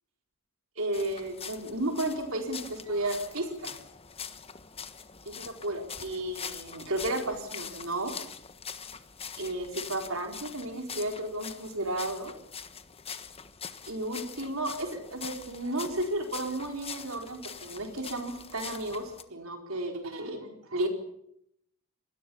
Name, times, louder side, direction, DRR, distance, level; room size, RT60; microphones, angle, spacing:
voice 1, 0.8-3.8 5.3-8.1 9.3-12.3 13.9-20.9, right 1 dB, 65° right, 4 dB, 4.3 m, -33 dB
sound 1, 0.9-19.2, left 7 dB, 25° left, 1.4 m, -43 dB
27.0 x 20.5 x 7.1 m, 0.76 s
head